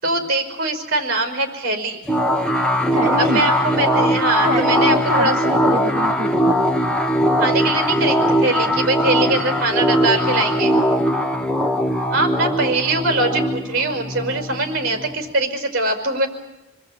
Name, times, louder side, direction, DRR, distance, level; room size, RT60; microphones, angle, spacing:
voice 1, 0.0-2.0 3.2-5.6 7.4-10.7 12.1-16.3, right 2 dB, 50° right, 6 dB, 5.4 m, -22 dB
sound 1, 2.1-15.3, equal, 5° left, 1.4 m, -20 dB
voice 2, 2.9-3.4 4.5-6.6, equal, 30° right, -1 dB, 2.3 m, -25 dB
28.0 x 21.5 x 8.9 m, 1.0 s
head